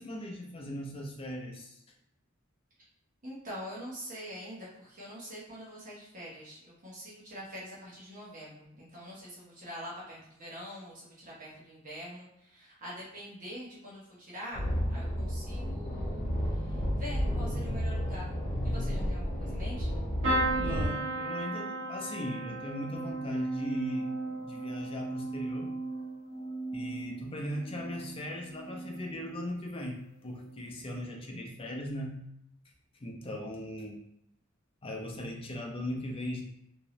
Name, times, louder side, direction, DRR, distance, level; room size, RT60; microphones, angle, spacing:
voice 1, 0.0-1.8 20.5-25.7 26.7-32.2 33.0-34.0 34.8-36.4, equal, 25° left, 0 dB, 0.6 m, -39 dB
voice 2, 3.2-18.4 18.6-19.9, equal, 40° right, -7 dB, 0.9 m, -45 dB
sound 1, 14.5-20.9, equal, 50° left, 1.0 m, -32 dB
sound 2, 20.2-28.1 28.5-29.1 30.3-30.5 30.8-30.9, right 2 dB, 65° right, 0.9 m, -35 dB
3.0 x 2.7 x 2.9 m, 0.78 s
head